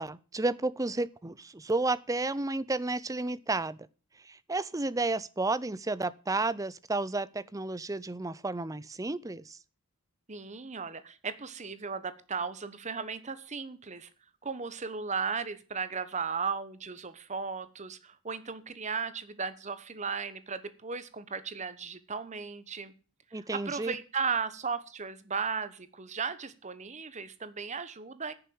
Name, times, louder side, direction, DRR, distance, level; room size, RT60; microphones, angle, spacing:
voice 1, 0.0-3.8 4.2-9.6 23.3-24.0, right 2 dB, 15° right, 0.5 m, -32 dB
voice 2, 10.3-14.1 14.4-22.9 23.3-28.3, right 5 dB, 30° right, 1.1 m, -36 dB
10.5 x 6.9 x 8.6 m
head